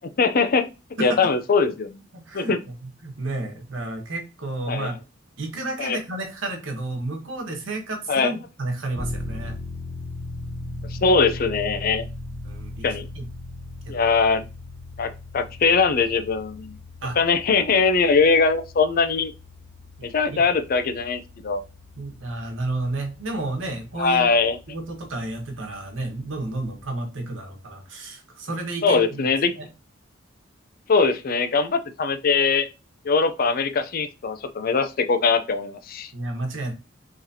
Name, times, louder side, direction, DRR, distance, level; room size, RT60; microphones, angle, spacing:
voice 1, 0.2-0.7 1.0-2.0 2.3-2.6 4.7-4.9 5.8-6.0 8.1-8.3 10.9-12.0 12.8-13.1 13.9-14.4 15.0-16.8 17.2-19.3 20.0-21.6 24.0-24.6 28.8-29.5 30.9-32.7 33.0-36.1, left 4 dB, 50° left, 10 dB, 0.5 m, -21 dB
voice 2, 1.0-1.3 2.3-2.5 2.8-4.9 5.4-9.6 12.4-12.9 13.1-13.2 13.8-14.0 17.0-17.2 20.3-20.4 22.0-24.3 24.7-29.3 29.5-29.7 36.1-36.7, right 2 dB, 85° right, 2 dB, 1.2 m, -31 dB
sound 1, 8.9-25.3, left 2 dB, 10° left, 0.9 m, -38 dB
3.9 x 3.1 x 2.7 m, 0.29 s
head